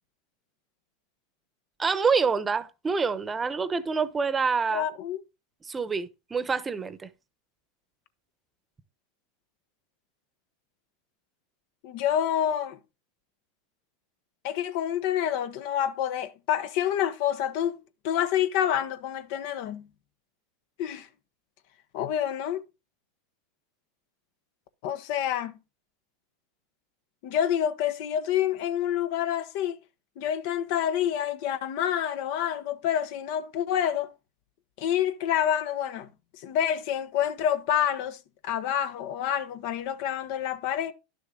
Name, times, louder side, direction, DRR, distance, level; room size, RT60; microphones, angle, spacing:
voice 1, 1.8-4.9 5.6-7.1, right 5 dB, 20° right, 1.0 m, -27 dB
voice 2, 4.7-5.2 11.8-12.8 14.4-17.8 18.0-19.9 20.8-21.1 21.9-22.6 24.8-25.5 27.2-29.8 30.2-34.1 34.8-36.1 36.4-40.9, left 10 dB, 65° left, 1.2 m, -28 dB
11.0 x 6.7 x 3.9 m
hypercardioid pair, 110°, 0 cm